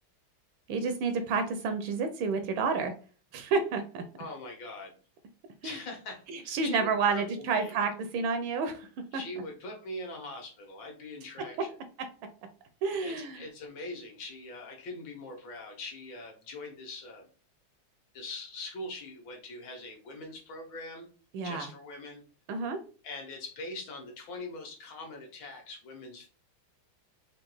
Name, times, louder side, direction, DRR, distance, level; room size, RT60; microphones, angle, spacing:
voice 1, 0.7-2.9 3.3-4.0 5.6-5.8 6.3-8.9 9.1-9.2 12.8-13.4 21.3-21.7 22.5-22.8, right 4 dB, 80° right, 8 dB, 1.3 m, -30 dB
voice 2, 4.2-5.0 5.6-7.8 9.1-11.8 13.0-17.3 18.1-21.1 21.4-22.2 23.0-26.3, left 2 dB, 65° left, 1 dB, 1.8 m, -42 dB
4.4 x 2.6 x 3.0 m, 0.38 s
omnidirectional pair, 2.3 m